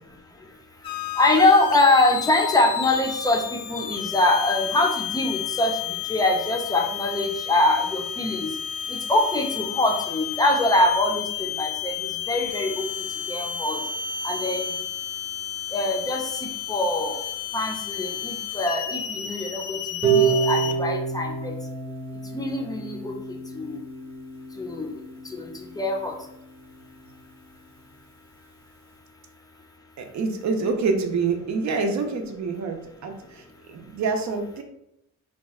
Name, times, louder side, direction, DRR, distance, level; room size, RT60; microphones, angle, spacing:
sound 1, 0.8-20.7, left 9 dB, 85° left, 0.5 m, -32 dB
voice 1, 1.2-5.7 6.1-8.5 8.9-11.9 12.3-12.7 13.3-13.8 14.2-14.7 15.7-16.2 16.7-17.2 17.5-19.8 20.1-21.5 22.3-23.1 23.5-23.8 24.6-24.9 25.4-25.5 25.8-26.1, left 2 dB, 10° left, 2 dB, 0.5 m, -23 dB
Harp, 20.0-26.1, right 6 dB, 15° right, 0.9 m, -27 dB
voice 2, 30.0-34.6, right 4 dB, 55° right, 4 dB, 0.7 m, -27 dB
2.8 x 2.3 x 4.1 m, 0.81 s
cardioid pair, 120°, 35 cm